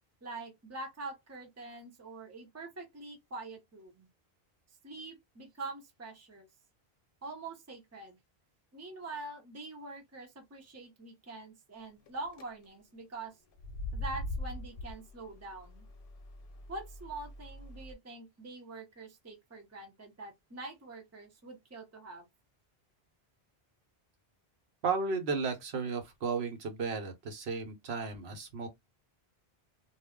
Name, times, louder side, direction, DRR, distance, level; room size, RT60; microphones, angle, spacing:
voice 1, 0.2-4.1 4.8-6.5 7.2-8.2 8.7-13.4 13.9-15.9 16.7-22.3, right 3 dB, 20° right, 0.6 m, -45 dB
sound 1, 12.1-12.4 13.5-17.9, left 1 dB, 60° left, 0.8 m, -42 dB
voice 2, 24.8-28.7, right 5 dB, 80° right, 1.0 m, -34 dB
2.3 x 2.1 x 3.5 m
omnidirectional pair, 1.1 m